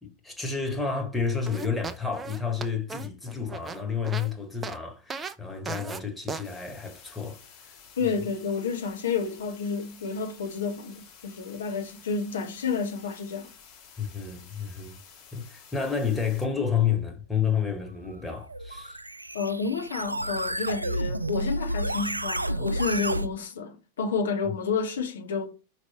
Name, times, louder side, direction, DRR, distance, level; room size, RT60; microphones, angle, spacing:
voice 1, 0.0-7.4 8.0-8.1 14.0-15.0 15.3-19.0, left 6 dB, 5° left, 1.6 m, -30 dB
sound 1, 1.5-4.3 4.6-4.8 5.1-5.3 5.7-6.0 6.3-6.4, right 4 dB, 20° right, 0.6 m, -36 dB
sound 2, 6.4-16.4, left 7 dB, 40° left, 3.6 m, -52 dB
voice 2, 8.0-13.5 19.3-25.5, left 5 dB, 65° left, 1.4 m, -30 dB
sound 3, 18.3-23.3, right 1 dB, 85° right, 0.4 m, -30 dB
5.2 x 5.0 x 4.3 m
figure-of-eight pair, 90°, 0 cm